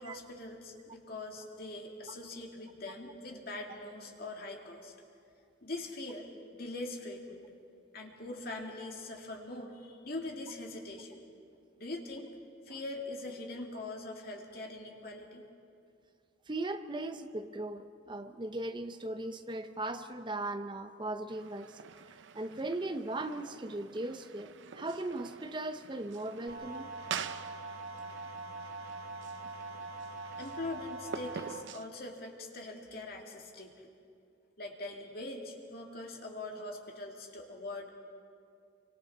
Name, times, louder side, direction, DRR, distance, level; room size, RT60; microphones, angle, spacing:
voice 1, 0.0-4.9 5.6-7.4 7.9-11.2 11.8-12.3 12.7-15.4 30.4-33.7 34.6-37.9, left 2 dB, 55° left, 0 dB, 2.4 m, -42 dB
voice 2, 16.5-21.8 22.3-26.9, right 2 dB, 25° right, 9 dB, 0.7 m, -38 dB
sound 1, 21.3-31.9, right 6 dB, 75° right, 0.5 m, -46 dB
sound 2, 26.5-31.5, right 2 dB, 55° right, 3.2 m, -43 dB
27.5 x 24.5 x 4.3 m, 2.4 s
head